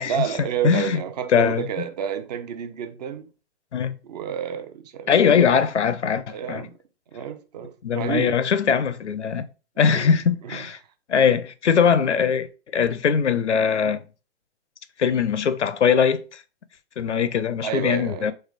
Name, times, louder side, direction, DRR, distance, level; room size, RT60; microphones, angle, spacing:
voice 1, 0.0-3.3 4.0-5.5 6.3-6.7 7.1-8.4 9.9-10.1 10.4-10.7 17.6-18.3, right 9 dB, 40° right, 0.5 m, -30 dB
voice 2, 0.6-1.0 1.3-1.7 3.7-3.9 5.1-6.7 7.8-9.5 9.8-10.8 11.1-12.5 12.7-14.0 15.0-16.2 17.0-18.3, left 7 dB, 85° left, 0.5 m, -21 dB
3.3 x 3.1 x 3.4 m
figure-of-eight pair, 115°, 34 cm